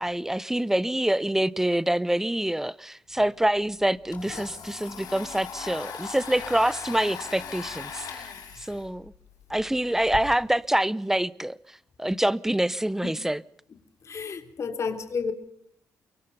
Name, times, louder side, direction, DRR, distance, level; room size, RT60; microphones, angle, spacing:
voice 1, 0.0-8.2 8.6-9.1 9.5-13.4, right 1 dB, 5° right, 0.8 m, -26 dB
Domestic sounds home sounds, 3.6-10.2, left 7 dB, 75° left, 6.4 m, -40 dB
voice 2, 14.1-15.3, left 5 dB, 50° left, 3.2 m, -31 dB
24.0 x 23.5 x 5.4 m
cardioid pair, 95°, 6 cm